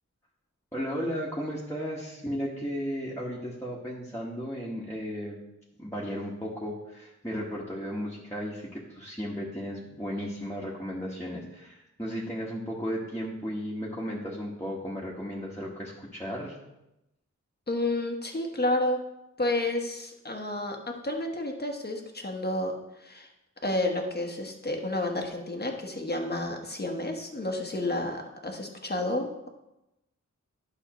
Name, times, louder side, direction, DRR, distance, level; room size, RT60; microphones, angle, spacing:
voice 1, 0.7-5.4 5.8-16.6, equal, 10° left, -7 dB, 1.6 m, -35 dB
voice 2, 17.7-19.0 19.4-22.7 23.0-23.3 23.6-29.5, left 1 dB, 30° left, 3 dB, 1.3 m, -30 dB
11.5 x 5.7 x 3.1 m, 0.91 s
wide cardioid pair, 60°, 31 cm